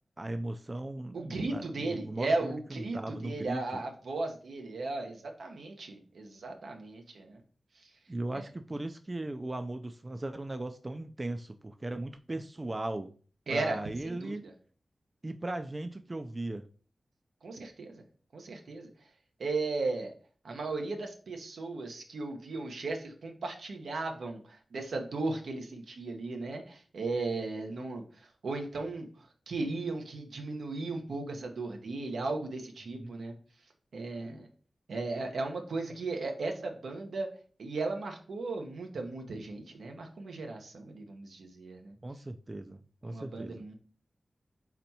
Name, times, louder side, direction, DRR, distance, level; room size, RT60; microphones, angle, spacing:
voice 1, 0.2-3.8 8.1-13.1 13.5-14.4 15.2-16.7 32.9-33.1 42.0-43.6, right 2 dB, 35° right, 8 dB, 0.4 m, -38 dB
voice 2, 1.1-7.4 8.3-8.4 13.5-13.8 14.0-14.5 17.4-18.0 18.3-18.9 19.4-20.1 20.4-33.3 33.9-34.5 34.9-37.3 37.6-41.9 43.0-43.7, right 3 dB, 85° right, 3 dB, 0.9 m, -36 dB
4.3 x 4.1 x 2.8 m, 0.42 s
cardioid pair, 50°, 0 cm